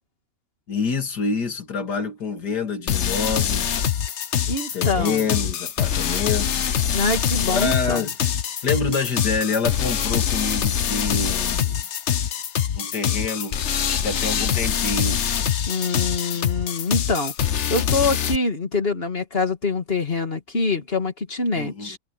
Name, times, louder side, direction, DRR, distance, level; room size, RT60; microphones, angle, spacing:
voice 1, 0.7-3.8 4.7-6.8 7.4-8.1 8.6-11.8 12.8-13.6 14.0-15.2 21.5-22.0, left 4 dB, 70° left, 2.9 m, -27 dB
sound 1, 2.9-18.4, left 8 dB, 50° left, 1.1 m, -24 dB
voice 2, 4.5-5.3 6.9-8.1 15.7-22.0, left 3 dB, 35° left, 2.4 m, -25 dB
omnidirectional pair, 1.8 m